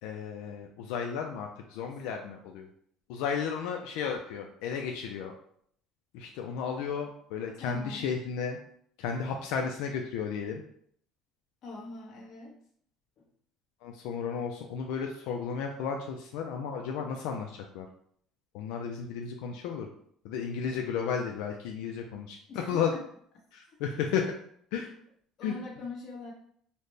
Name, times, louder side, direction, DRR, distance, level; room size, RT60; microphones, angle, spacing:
voice 1, 0.0-2.7 3.1-5.3 6.1-8.6 9.0-10.6 13.8-17.9 18.5-19.9 20.2-22.4 22.7-22.9 23.5-24.2 24.7-24.9 25.4-25.6, left 6 dB, 85° left, 2 dB, 0.4 m, -33 dB
voice 2, 7.6-8.1 11.6-12.6 13.2-13.3 22.5-23.0 25.4-26.3, left 3 dB, 45° left, -2 dB, 1.1 m, -42 dB
4.0 x 2.1 x 3.2 m, 0.64 s
cardioid pair, 160°, 0 cm